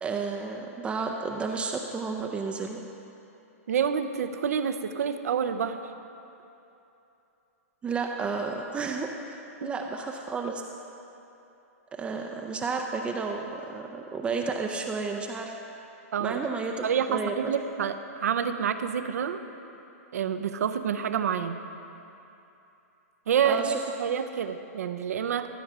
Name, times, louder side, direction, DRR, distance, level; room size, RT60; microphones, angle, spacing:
voice 1, 0.0-2.8 7.8-10.6 11.9-15.6 16.2-17.5 23.4-23.8, right 4 dB, 15° right, 2 dB, 0.4 m, -32 dB
voice 2, 3.7-5.8 9.6-9.7 16.1-16.4 16.8-19.4 20.1-21.6 23.3-25.5, right 7 dB, 80° right, 9 dB, 0.6 m, -28 dB
13.5 x 4.8 x 6.6 m, 2.9 s
hypercardioid pair, 140°, 8 cm